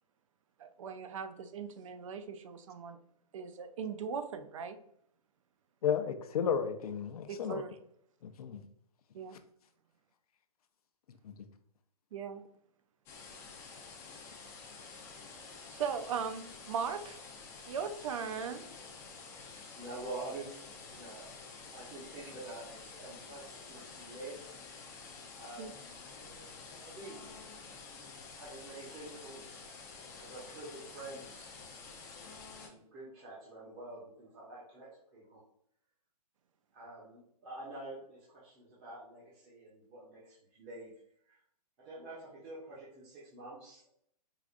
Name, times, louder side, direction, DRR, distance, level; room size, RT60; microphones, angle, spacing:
voice 1, 0.6-3.0 3.3-4.8 7.3-7.7 9.1-9.4 12.1-12.4 15.7-17.2 17.7-18.7 25.6-25.7, right 6 dB, 55° right, 9 dB, 0.4 m, -38 dB
voice 2, 5.8-7.6 8.2-8.6 11.2-11.3, left 7 dB, 70° left, 9 dB, 0.5 m, -33 dB
sound 1, 13.1-32.7, left 4 dB, 15° left, 0.5 m, -50 dB
voice 3, 19.4-24.6 25.4-25.8 26.6-27.2 28.3-29.5 30.1-31.7 32.6-35.4 36.7-40.9 41.3-41.4 41.8-43.9, right 2 dB, 25° right, -7 dB, 0.9 m, -47 dB
4.8 x 2.4 x 2.5 m, 0.70 s
hypercardioid pair, 155°, 20 cm